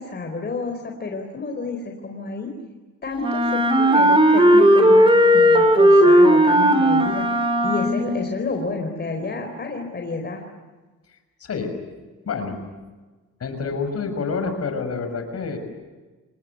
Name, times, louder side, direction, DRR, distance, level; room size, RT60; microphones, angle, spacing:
voice 1, 0.0-2.5 3.0-10.4, left 3 dB, 35° left, 3 dB, 4.3 m, -30 dB
Wind instrument woodwind instrument, 3.2-8.2, equal, 15° right, 4.2 m, -15 dB
voice 2, 11.4-11.7 12.2-12.6 13.4-15.6, left 5 dB, 55° left, 7 dB, 6.2 m, -27 dB
27.5 x 20.0 x 9.5 m, 1.3 s
cardioid pair, 90°, 30 cm